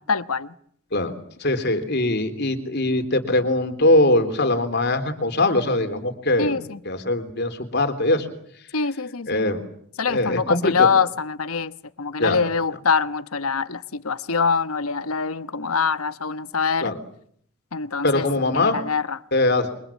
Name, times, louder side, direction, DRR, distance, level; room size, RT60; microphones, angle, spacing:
voice 1, 0.1-0.5 6.4-6.8 8.7-9.5 10.0-16.9 17.7-18.3 18.5-19.2, left 5 dB, 90° left, 13 dB, 1.1 m, -24 dB
voice 2, 1.4-6.6 6.9-8.3 9.3-9.6 10.1-10.9 12.2-12.4 16.8-17.0 18.0-18.8 19.3-19.7, left 2 dB, 50° left, 8 dB, 3.6 m, -21 dB
29.0 x 24.5 x 7.4 m, 0.66 s
head